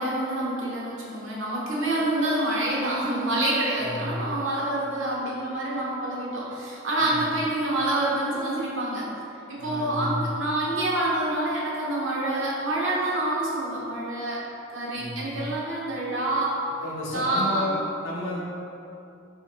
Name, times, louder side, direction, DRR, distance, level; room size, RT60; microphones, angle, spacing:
voice 1, 0.0-9.1 9.3-14.4 14.7-16.6 17.1-17.8, right 1 dB, 80° right, -5 dB, 0.8 m, -27 dB
voice 2, 3.8-4.2 7.0-7.2 9.6-10.2 14.9-15.3 16.8-18.4, left 1 dB, 80° left, -4 dB, 0.7 m, -32 dB
2.9 x 2.5 x 4.0 m, 2.7 s
head